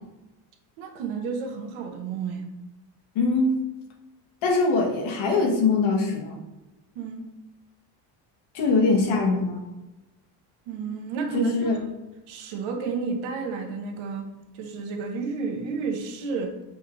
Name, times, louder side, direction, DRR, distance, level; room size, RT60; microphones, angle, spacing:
voice 1, 0.8-2.5 6.9-7.3 10.7-11.8 12.3-16.6, right 5 dB, 75° right, 3 dB, 1.0 m, -31 dB
voice 2, 3.1-3.6 4.4-6.4 8.5-9.6 11.3-11.8, left 3 dB, 75° left, 1 dB, 1.3 m, -22 dB
5.6 x 2.6 x 3.0 m, 1.0 s
cardioid pair, 95°, 48 cm